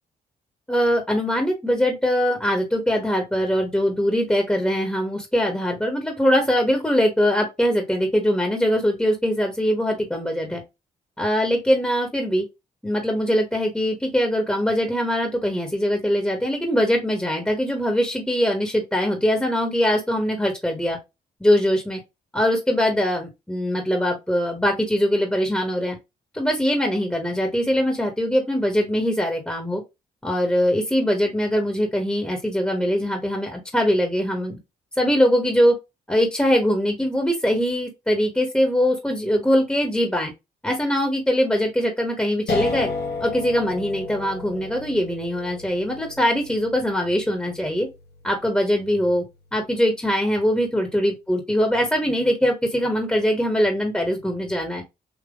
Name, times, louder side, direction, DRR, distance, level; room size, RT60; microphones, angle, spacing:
voice 1, 0.7-10.6 11.2-12.4 12.8-21.0 21.4-22.0 22.3-26.0 26.3-29.8 30.2-34.6 35.0-35.7 36.1-40.3 40.6-42.9 43.2-47.9 48.2-49.2 49.5-54.8, equal, 5° left, 3 dB, 1.5 m, -22 dB
sound 1, 42.5-49.4, left 4 dB, 60° left, 1.2 m, -33 dB
3.7 x 2.9 x 2.4 m, 0.22 s
supercardioid pair, 50°, 18 cm